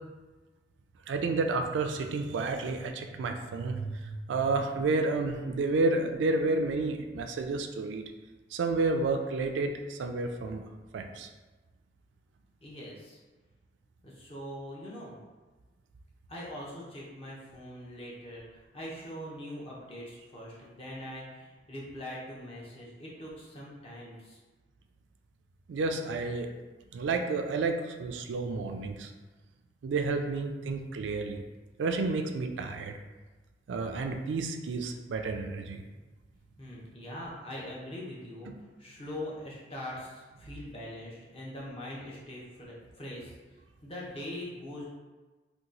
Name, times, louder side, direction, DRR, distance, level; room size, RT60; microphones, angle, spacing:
voice 1, 1.1-8.0 8.5-10.6 10.9-11.3 25.7-26.5 26.9-29.1 29.8-31.4 31.8-33.0 33.7-35.8, right 3 dB, 80° right, 5 dB, 0.3 m, -30 dB
voice 2, 12.6-13.2 14.0-15.2 16.3-18.4 18.7-24.4 36.6-38.5 38.8-43.3 43.8-44.9, left 1 dB, 35° left, -5 dB, 0.8 m, -42 dB
2.9 x 2.3 x 3.8 m, 1.2 s
head